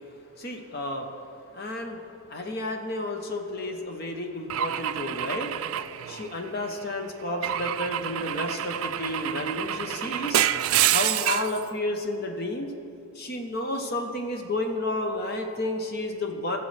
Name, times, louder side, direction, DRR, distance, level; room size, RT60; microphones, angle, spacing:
voice 1, 0.3-1.1 1.5-5.6 6.1-10.4 10.9-12.7 13.1-16.6, left 1 dB, 45° left, 3 dB, 0.8 m, -31 dB
Car / Engine / Glass, 4.5-6.7 7.4-11.6, right 11 dB, 75° right, 0.4 m, -27 dB
20.5 x 7.0 x 3.3 m, 2.7 s
head